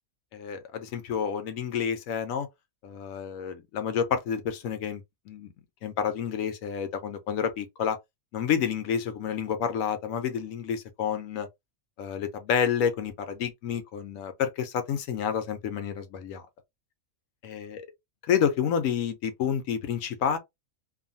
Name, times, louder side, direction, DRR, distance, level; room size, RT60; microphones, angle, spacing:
voice 1, 0.3-2.5 2.8-5.5 5.8-8.0 8.3-11.5 12.0-16.5 17.4-17.9 18.2-20.4, left 7 dB, 80° left, 1.0 m, -29 dB
2.6 x 2.4 x 2.5 m
omnidirectional pair, 1.4 m